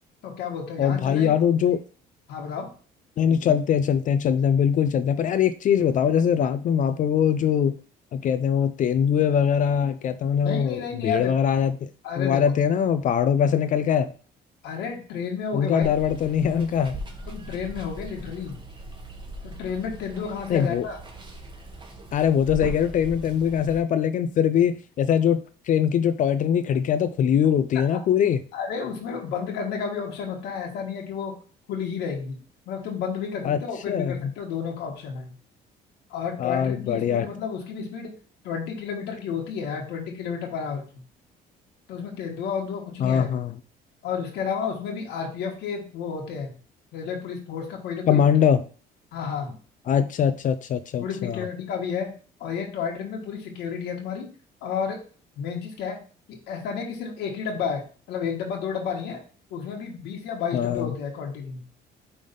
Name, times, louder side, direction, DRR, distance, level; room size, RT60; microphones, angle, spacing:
voice 1, 0.2-1.3 2.3-2.7 10.4-11.3 12.0-12.5 14.6-15.9 17.3-18.6 19.4-21.0 27.9-28.0 28.5-31.3 31.7-32.4 32.7-35.3 36.1-38.1 38.4-40.8 41.9-43.3 44.0-46.6 46.9-48.3 49.1-49.5 51.0-52.1 52.4-54.3 54.6-55.0 55.4-56.0 56.3-59.2 59.5-61.6, left 6 dB, 85° left, 1.5 m, -31 dB
voice 2, 0.8-1.8 3.2-7.7 8.1-11.9 12.2-14.1 15.5-16.9 20.5-20.9 22.1-25.4 25.7-28.4 33.4-33.6 33.9-34.2 36.4-37.3 43.0-43.5 48.1-48.6 49.9-51.5 60.5-60.9, left 8 dB, 50° left, 0.5 m, -22 dB
Water, 15.8-23.8, right 1 dB, 25° right, 1.7 m, -39 dB
5.5 x 3.5 x 5.2 m
cardioid pair, 110°, 17 cm